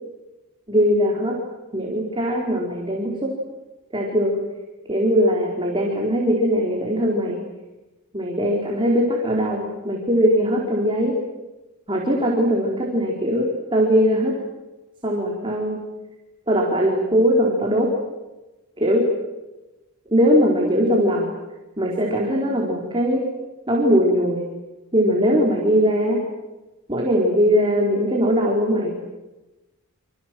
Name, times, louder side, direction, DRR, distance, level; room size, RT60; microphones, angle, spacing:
voice 1, 0.7-1.4 1.7-3.3 3.9-4.4 4.9-7.4 8.1-11.1 11.9-14.3 15.0-15.8 16.5-17.9 18.8-19.0 20.1-21.3 21.8-23.2 23.7-24.5 24.9-26.2 26.9-28.9, equal, 25° right, -1 dB, 4.5 m, -20 dB
27.5 x 27.5 x 7.8 m, 1.1 s
head